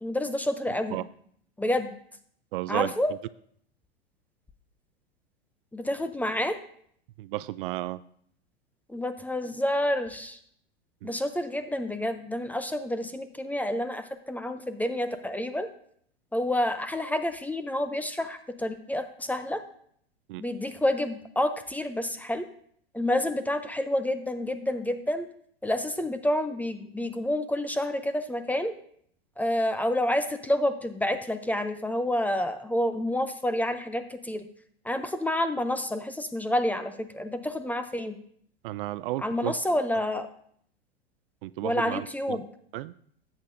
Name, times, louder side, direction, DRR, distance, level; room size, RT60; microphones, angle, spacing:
voice 1, 0.0-1.0 1.6-1.9 2.7-3.1 5.7-6.6 8.9-10.4 11.0-15.7 16.3-19.6 20.4-22.5 22.9-25.3 25.6-28.7 29.4-34.5 34.8-38.2 39.2-40.3 41.6-42.4, left 1 dB, 5° left, 10 dB, 0.5 m, -29 dB
voice 2, 2.5-2.9 7.2-8.0 11.0-11.1 20.3-20.4 38.6-39.6 39.9-40.0 41.4-42.4 42.7-42.9, right 16 dB, 55° right, 17 dB, 0.4 m, -33 dB
13.0 x 8.4 x 2.6 m, 0.63 s
hypercardioid pair, 105°, 32 cm